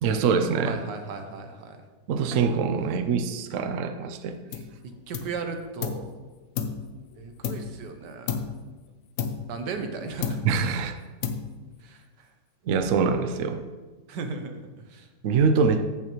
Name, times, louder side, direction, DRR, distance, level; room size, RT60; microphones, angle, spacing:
voice 1, 0.0-0.8 2.1-4.4 10.4-11.0 12.7-13.6 15.2-15.9, right 5 dB, 65° right, 8 dB, 0.8 m, -24 dB
voice 2, 0.6-1.8 5.1-6.1 7.2-8.5 9.5-10.4 11.8-12.3 14.1-15.1, right 4 dB, 85° right, 6 dB, 1.5 m, -36 dB
sound 1, 4.5-4.8 5.1-6.1 6.6-7.9 8.3-8.7 9.2-9.9 10.2-10.7 11.2-11.8, left 7 dB, 65° left, 0.9 m, -32 dB
14.5 x 5.6 x 3.1 m, 1.3 s
omnidirectional pair, 1.8 m